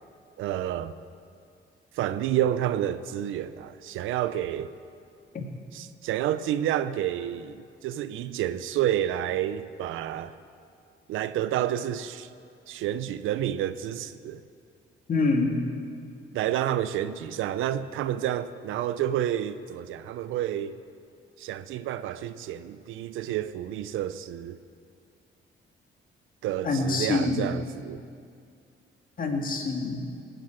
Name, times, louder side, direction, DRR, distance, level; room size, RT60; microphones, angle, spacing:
voice 1, 0.4-0.9 1.9-4.7 5.7-10.3 11.1-12.3 12.7-14.4 16.3-20.8 21.4-24.6 26.4-28.0, right 11 dB, 90° right, 0.6 m, -29 dB
voice 2, 15.1-15.6 26.6-27.5 29.2-30.0, left 3 dB, 45° left, 2.3 m, -26 dB
18.0 x 8.0 x 8.9 m
cardioid pair, 90°, 20 cm